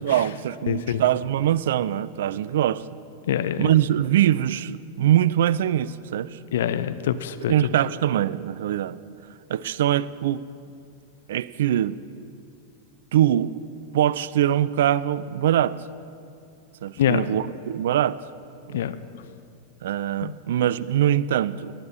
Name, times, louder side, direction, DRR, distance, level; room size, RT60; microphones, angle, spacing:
voice 1, 0.0-2.8 3.6-6.4 7.5-9.0 9.5-10.4 11.3-12.0 13.1-13.5 13.9-15.8 16.8-18.2 18.7-18.8 19.8-21.7, right 11 dB, 60° right, 19 dB, 0.3 m, -23 dB
voice 2, 0.7-1.0 3.3-3.7 6.5-7.5 17.0-17.2 18.7-18.9 20.2-20.3, left 10 dB, 60° left, 12 dB, 0.6 m, -25 dB
18.5 x 10.5 x 4.4 m, 2.5 s
figure-of-eight pair, 90°, 0 cm